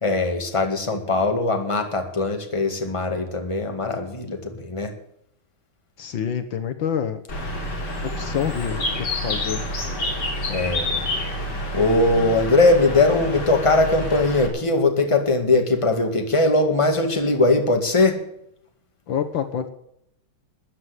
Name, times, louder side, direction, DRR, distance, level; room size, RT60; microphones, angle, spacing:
voice 1, 0.0-4.9 10.5-11.0 11.3-11.4 11.7-18.2, left 2 dB, 15° left, 4 dB, 2.0 m, -20 dB
voice 2, 6.0-7.2 8.2-8.8 9.2-9.6 19.1-19.7, left 8 dB, 70° left, 8 dB, 1.7 m, -26 dB
Bird, 7.3-14.5, left 1 dB, 55° left, 3.5 m, -28 dB
14.0 x 9.5 x 8.2 m, 0.76 s
omnidirectional pair, 2.3 m